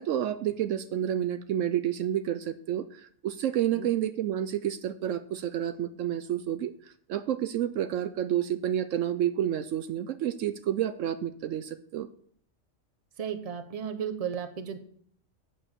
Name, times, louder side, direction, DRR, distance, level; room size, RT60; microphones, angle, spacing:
voice 1, 0.0-6.7 7.1-12.1, right 11 dB, 75° right, 11 dB, 0.9 m, -29 dB
voice 2, 13.2-14.8, right 7 dB, 30° right, 8 dB, 0.9 m, -34 dB
7.6 x 6.5 x 8.0 m, 0.62 s
omnidirectional pair, 1.4 m